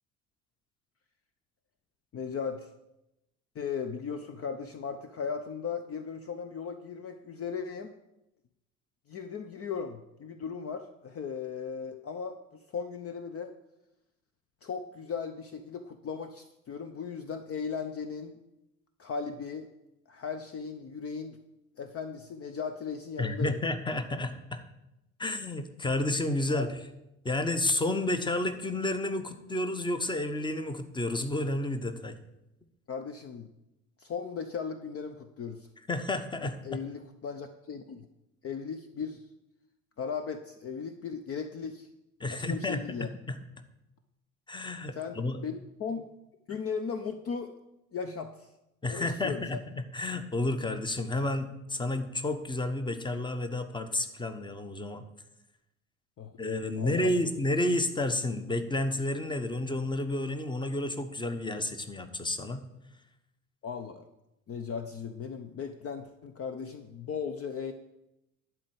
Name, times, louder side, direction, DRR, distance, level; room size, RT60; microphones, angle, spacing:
voice 1, 2.1-2.7 3.5-7.9 9.1-13.5 14.6-18.4 19.0-19.7 20.1-21.4 21.8-23.6 26.5-26.7 32.9-33.5 34.0-35.7 36.6-38.1 38.4-39.2 40.0-41.9 42.3-43.1 45.0-46.1 46.5-47.5 47.9-48.5 48.9-49.6 56.2-56.3 56.8-57.1 63.6-64.1 64.5-67.7, left 6 dB, 35° left, 9 dB, 0.8 m, -37 dB
voice 2, 23.2-24.6 25.2-26.7 27.2-32.2 35.9-36.8 42.2-43.4 44.5-45.4 48.8-55.0 56.4-62.6, left 2 dB, 10° left, 10 dB, 1.1 m, -31 dB
11.5 x 4.6 x 7.8 m, 0.90 s
figure-of-eight pair, 65°, 42 cm